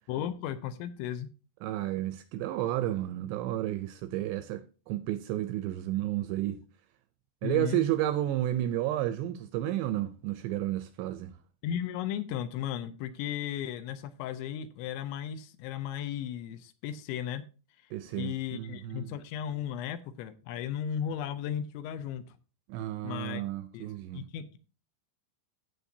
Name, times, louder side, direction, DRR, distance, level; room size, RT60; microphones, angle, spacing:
voice 1, 0.1-1.3 7.4-7.8 11.6-17.4 18.2-22.4 23.0-23.4 23.7-23.9 24.1-24.6, left 9 dB, 80° left, 2.9 m, -35 dB
voice 2, 1.6-6.6 7.4-11.4 17.9-19.2 22.7-24.3, right 13 dB, 85° right, 2.5 m, -32 dB
15.5 x 7.0 x 2.7 m
omnidirectional pair, 5.5 m